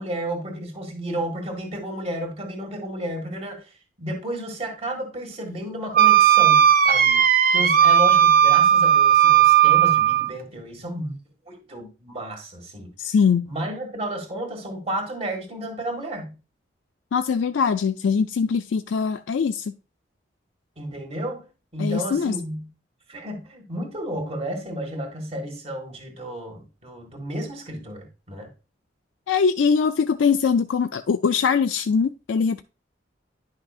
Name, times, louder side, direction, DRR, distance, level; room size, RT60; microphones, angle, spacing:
voice 1, 0.0-11.1 11.5-12.9 13.4-16.4 20.8-21.4 21.7-22.7 23.1-28.5, right 1 dB, 35° right, 1.8 m, -32 dB
Wind instrument woodwind instrument, 5.9-10.3, right 10 dB, 50° right, 0.5 m, -16 dB
voice 2, 13.0-13.5 17.1-19.7 21.8-22.3 29.3-32.6, left 6 dB, 85° left, 0.4 m, -22 dB
10.5 x 6.1 x 2.4 m
head